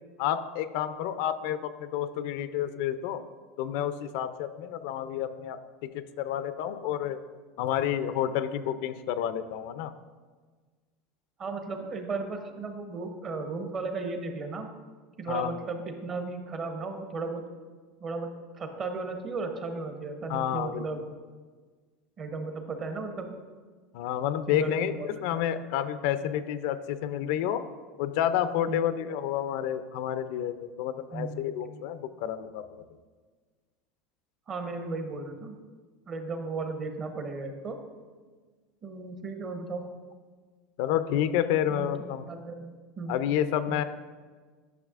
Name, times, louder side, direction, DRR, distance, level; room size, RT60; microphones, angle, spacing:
voice 1, 0.2-3.2 3.6-7.2 7.6-9.9 15.3-15.5 20.3-20.9 23.9-27.6 28.0-32.8 40.8-42.2 43.1-43.8, left 10 dB, 70° left, 11 dB, 0.4 m, -30 dB
voice 2, 11.4-14.7 15.2-17.4 18.0-18.3 18.6-21.0 22.2-23.4 24.5-25.4 28.7-28.8 31.1-31.4 34.5-35.6 36.1-37.8 38.8-39.9 41.7-41.9 42.3-42.7 43.0-43.2 43.7-43.8, right 3 dB, 35° right, 5 dB, 0.9 m, -35 dB
10.5 x 5.9 x 2.5 m, 1.4 s
supercardioid pair, 130°, 0 cm